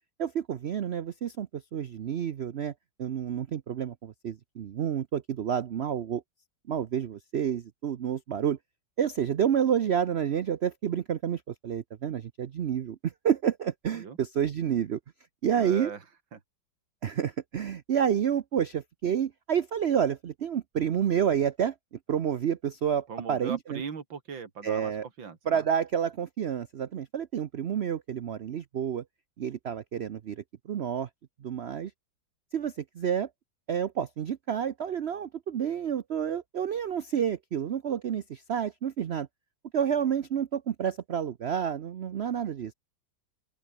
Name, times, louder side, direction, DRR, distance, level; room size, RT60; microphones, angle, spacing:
voice 1, 0.2-2.7 3.0-6.2 6.7-8.6 9.0-15.0 15.4-15.9 17.0-21.7 22.1-23.8 24.6-25.0 25.5-29.0 29.4-31.1 31.4-31.9 32.5-33.3 33.7-39.3 39.7-42.7, right 8 dB, 75° right, 0.6 m, -29 dB
voice 2, 15.6-16.0 16.3-16.4 23.1-24.9 25.2-25.6, right 6 dB, 90° right, 3.1 m, -39 dB
open air
omnidirectional pair, 2.0 m